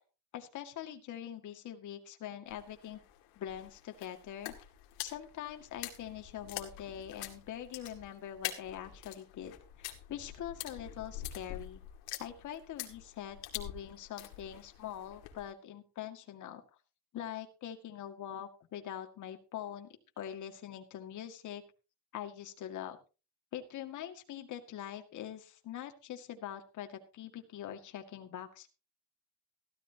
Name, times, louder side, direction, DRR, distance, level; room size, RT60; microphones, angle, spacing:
voice 1, 0.3-3.0 3.4-4.5 5.0-11.8 12.2-16.6 17.1-21.6 22.1-23.0 23.5-28.7, left 10 dB, 45° left, 5 dB, 2.0 m, -43 dB
sound 1, 2.5-15.5, left 13 dB, 90° left, 2.2 m, -46 dB
15.5 x 13.0 x 2.9 m, 0.32 s
cardioid pair, 140°, 40 cm